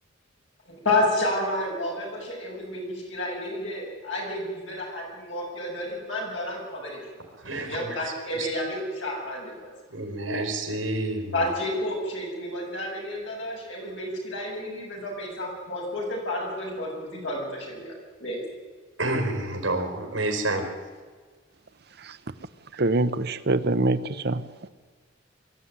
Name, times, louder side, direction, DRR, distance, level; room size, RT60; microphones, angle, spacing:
voice 1, 0.7-7.0 7.6-9.7 11.3-17.9 18.2-18.4, left 1 dB, 70° left, -2 dB, 7.7 m, -30 dB
voice 2, 7.4-7.9 8.4-8.5 9.9-11.3 19.0-20.6, right 2 dB, 75° right, 2 dB, 4.5 m, -28 dB
voice 3, 22.8-24.0 24.2-24.4, right 2 dB, 55° right, 11 dB, 0.9 m, -23 dB
23.5 x 13.0 x 9.6 m, 1.5 s
head